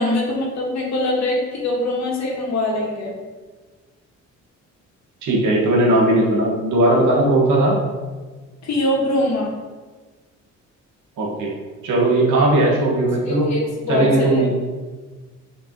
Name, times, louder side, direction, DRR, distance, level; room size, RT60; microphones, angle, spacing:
voice 1, 0.0-3.2 8.6-9.5 13.2-14.5, left 1 dB, 65° left, -2 dB, 1.8 m, -22 dB
voice 2, 5.2-7.8 11.2-11.5 11.8-13.5 13.9-14.5, right 1 dB, 80° right, -3 dB, 1.9 m, -17 dB
6.2 x 5.0 x 3.1 m, 1.3 s
cardioid pair, 90°, 30 cm